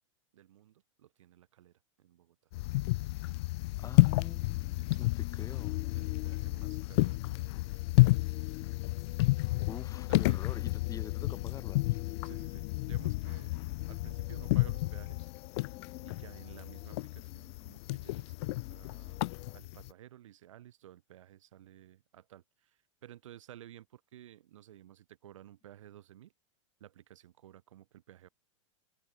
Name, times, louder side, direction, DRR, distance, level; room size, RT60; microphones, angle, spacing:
voice 1, 0.3-2.4 4.8-5.6 5.9-7.5 7.9-8.7 10.1-10.4 12.2-13.5 13.9-15.3 16.0-19.2 19.5-26.3 26.8-28.3, right 12 dB, 70° right, 7.2 m, -55 dB
sound 1, 2.5-19.9, left 21 dB, 55° left, 0.8 m, -31 dB
sound 2, 3.3-19.6, left 19 dB, 40° left, 3.3 m, -50 dB
voice 2, 3.8-5.8 9.7-12.0, left 7 dB, 20° left, 1.4 m, -46 dB
hypercardioid pair, 115°, 17 cm